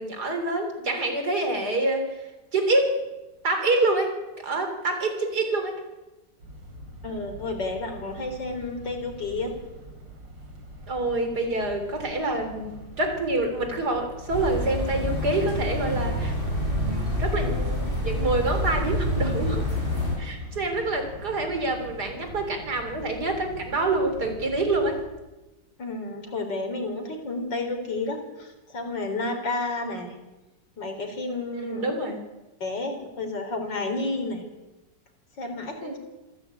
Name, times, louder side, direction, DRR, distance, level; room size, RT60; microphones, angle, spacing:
voice 1, 0.0-3.1 3.4-5.9 10.9-16.3 17.2-19.7 20.2-25.0 27.8-27.9 31.5-32.2 35.8-36.0, right 2 dB, 60° right, 6 dB, 4.2 m, -27 dB
sound 1, 6.4-25.0, equal, 80° right, 4.8 m, -43 dB
voice 2, 7.0-9.5 25.8-30.2 30.8-31.9 32.6-34.4 35.4-36.0, left 2 dB, 80° left, 4 dB, 4.5 m, -31 dB
sound 2, 14.3-20.2, left 1 dB, 30° right, 7.5 m, -27 dB
26.5 x 13.5 x 8.6 m, 1.1 s
omnidirectional pair, 1.9 m